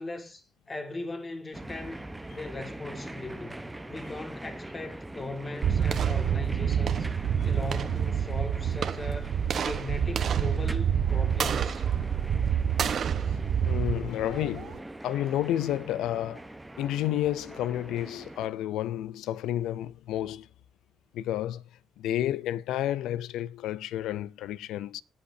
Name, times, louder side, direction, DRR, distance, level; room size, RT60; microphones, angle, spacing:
voice 1, 0.0-7.1 7.4-11.9, left 2 dB, 30° left, 1.9 m, -39 dB
sound 1, 1.5-18.5, right 1 dB, 10° right, 0.9 m, -42 dB
sound 2, 5.6-14.8, right 8 dB, 60° right, 1.0 m, -27 dB
voice 2, 13.6-16.4 16.8-20.5 21.1-21.6 22.0-25.0, left 12 dB, 85° left, 0.4 m, -30 dB
18.0 x 8.5 x 2.7 m
cardioid pair, 90°, 0 cm